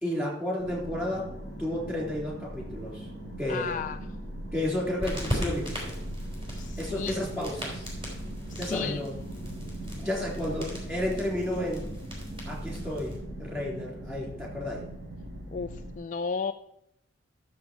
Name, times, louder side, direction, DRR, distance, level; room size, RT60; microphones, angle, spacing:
voice 1, 0.0-1.3 1.6-3.1 3.4-3.8 4.5-6.0 6.8-7.9 8.6-9.1 9.8-11.9 12.5-14.8, left 1 dB, 10° right, -3 dB, 3.7 m, -32 dB
sound 1, 0.6-16.0, right 1 dB, 55° right, 4.0 m, -40 dB
voice 2, 3.5-4.0 6.5-7.2 8.5-9.0 15.5-16.5, left 5 dB, 40° left, 7 dB, 0.3 m, -34 dB
sound 2, 5.0-13.2, equal, 30° right, 3.7 m, -38 dB
12.5 x 7.0 x 4.5 m, 0.78 s
head